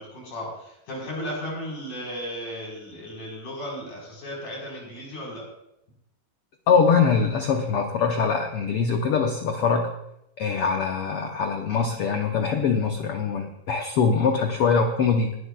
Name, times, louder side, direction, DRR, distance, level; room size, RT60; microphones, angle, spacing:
voice 1, 0.0-5.4, equal, 70° left, -2 dB, 5.7 m, -35 dB
voice 2, 6.7-9.9 10.4-15.4, left 5 dB, 85° left, 4 dB, 1.3 m, -23 dB
22.5 x 11.5 x 2.3 m, 0.81 s
omnidirectional pair, 3.7 m